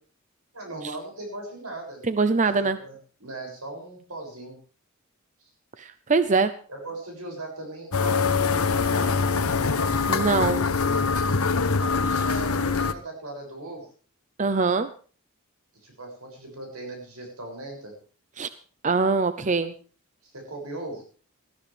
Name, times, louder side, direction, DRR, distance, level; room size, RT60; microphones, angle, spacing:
voice 1, 0.5-2.1 2.4-2.5 2.8-4.6 5.4-5.5 6.7-9.4 11.8-13.9 15.8-17.9 20.2-21.0, right 2 dB, 85° right, 1 dB, 6.7 m, -38 dB
voice 2, 2.1-2.8 5.8-6.5 10.1-10.7 14.4-14.9 18.4-18.5 18.8-19.7, right 4 dB, 35° right, 12 dB, 0.6 m, -23 dB
sound 1, 7.9-12.9, left 4 dB, 80° left, 1.1 m, -23 dB
19.5 x 13.5 x 3.4 m, 0.39 s
head